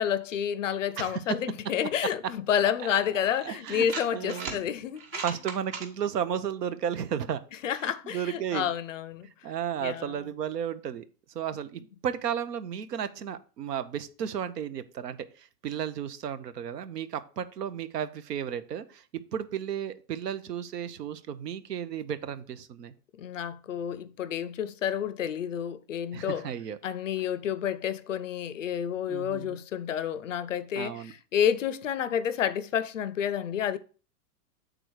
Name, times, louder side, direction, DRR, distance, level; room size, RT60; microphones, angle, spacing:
voice 1, 0.0-5.2 7.6-9.3 9.8-10.3 23.2-26.4 26.8-33.8, left 9 dB, 55° left, 0.5 m, -30 dB
voice 2, 2.8-3.9 4.1-4.6 5.2-7.4 7.8-8.7 9.4-11.1 11.3-22.9 26.1-26.8 29.1-29.6 30.8-31.1, right 9 dB, 75° right, 0.9 m, -34 dB
sound 1, 2.9-3.0 3.7-4.6 5.0-5.9, right 5 dB, 35° right, 1.2 m, -36 dB
7.9 x 3.8 x 4.6 m
hypercardioid pair, 175°, 48 cm